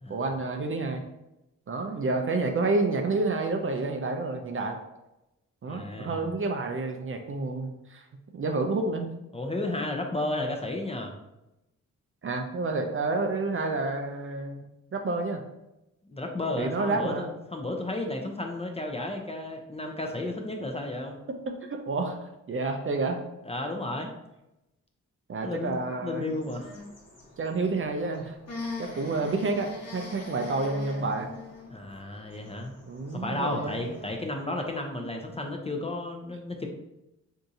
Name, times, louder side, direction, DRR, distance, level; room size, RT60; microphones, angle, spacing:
voice 1, 0.1-1.0 1.7-4.8 5.6-8.0 8.3-9.1 12.2-14.6 14.9-15.4 16.6-17.3 21.5-23.2 25.3-26.3 27.4-28.4 28.8-31.3 32.9-33.9, right 3 dB, 40° right, 4 dB, 0.5 m, -29 dB
voice 2, 5.7-6.3 9.3-11.1 16.1-21.2 23.4-24.1 25.4-26.7 31.7-32.7 33.1-36.7, left 2 dB, 20° left, 2 dB, 0.5 m, -33 dB
sound 1, 26.3-34.3, left 3 dB, 50° left, 1.0 m, -43 dB
3.6 x 2.7 x 2.6 m, 0.92 s
cardioid pair, 55°, 33 cm